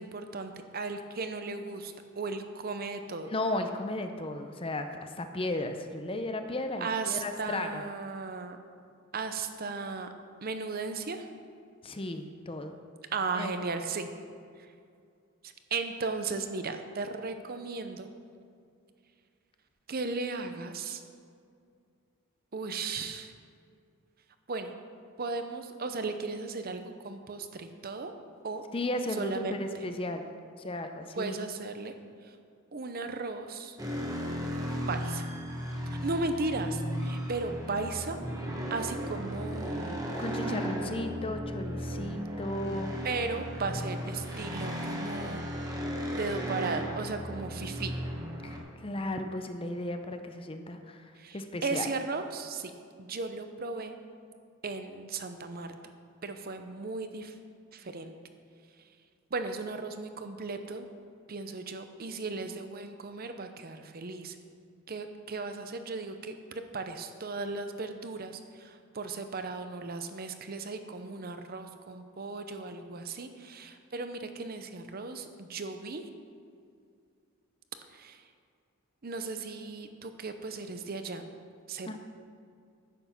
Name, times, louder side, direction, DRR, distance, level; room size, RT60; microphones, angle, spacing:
voice 1, 0.0-3.3 6.8-8.6 9.1-10.1 10.4-11.3 13.1-14.1 14.6-14.7 15.4-18.1 19.9-21.0 22.5-23.3 24.5-24.7 25.2-28.1 28.4-28.6 29.1-29.9 31.2-31.9 32.2-32.4 32.7-33.8 34.9-35.3 36.0-38.2 38.7-40.0 43.0-45.4 46.1-48.0 51.1-52.7 53.0-54.0 54.6-55.7 56.2-57.4 57.7-58.2 59.3-60.9 61.3-64.4 64.9-76.0 77.9-78.2 79.0-81.3 81.7-82.0, right 3 dB, 45° right, 8 dB, 0.7 m, -36 dB
voice 2, 3.3-7.8 11.8-12.8 13.3-13.5 28.7-30.2 30.6-31.5 40.2-42.9 48.4-51.9 81.9-82.0, left 1 dB, 25° left, 7 dB, 0.6 m, -35 dB
sound 1, 33.8-48.6, equal, 15° right, 1.3 m, -35 dB
10.0 x 7.8 x 5.9 m, 2.3 s
head